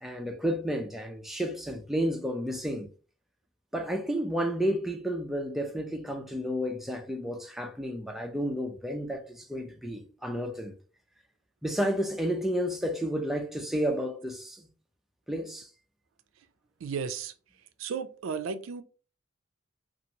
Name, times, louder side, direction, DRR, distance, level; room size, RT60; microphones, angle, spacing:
voice 1, 0.0-2.9 3.7-10.8 11.6-14.7 15.3-15.7, equal, ahead, 0.3 m, -31 dB
voice 2, 16.8-17.3 17.8-18.8, right 6 dB, 80° right, 0.4 m, -34 dB
2.9 x 2.5 x 2.7 m
head